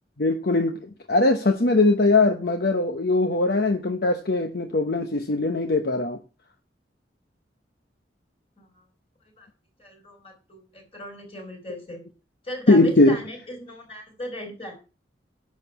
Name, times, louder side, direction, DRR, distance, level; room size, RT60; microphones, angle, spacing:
voice 1, 0.2-6.2 12.7-13.2, left 2 dB, 60° left, 6 dB, 0.9 m, -21 dB
voice 2, 9.8-12.0 12.4-14.7, equal, 35° left, 2 dB, 5.2 m, -38 dB
10.5 x 6.6 x 5.8 m, 0.33 s
head